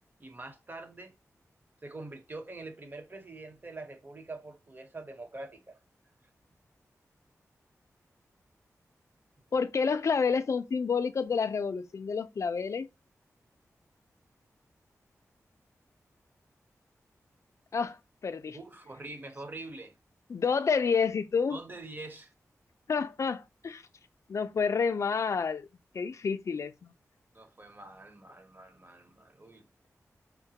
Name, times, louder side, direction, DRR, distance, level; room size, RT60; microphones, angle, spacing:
voice 1, 0.2-1.1 1.8-5.8 18.5-19.9 21.5-22.3 27.3-29.7, right 2 dB, 35° right, 0.9 m, -44 dB
voice 2, 9.5-12.9 17.7-18.0 18.2-18.6 20.3-21.6 22.9-23.8 24.3-25.7 25.9-26.9, left 5 dB, 60° left, 0.4 m, -29 dB
5.4 x 2.1 x 2.8 m
wide cardioid pair, 80°, 6 cm